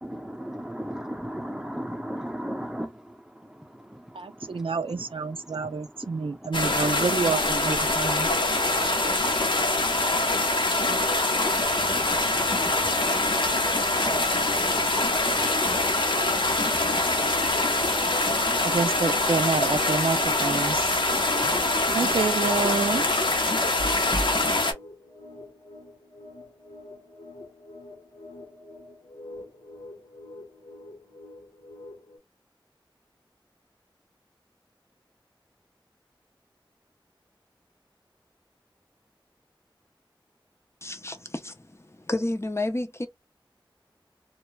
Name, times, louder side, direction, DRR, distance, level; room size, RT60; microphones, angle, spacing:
voice 1, 0.0-7.5 7.8-10.9, equal, 5° right, 0.7 m, -39 dB
voice 2, 4.1-8.3 18.6-20.9 21.9-23.1, right 4 dB, 85° right, 0.4 m, -28 dB
sound 1, 6.5-24.7, left 2 dB, 65° left, 0.7 m, -24 dB
sound 2, 23.8-32.2, equal, 85° left, 1.1 m, -41 dB
voice 3, 40.8-43.1, left 2 dB, 30° left, 0.6 m, -31 dB
2.3 x 2.1 x 3.1 m
wide cardioid pair, 45°, 9 cm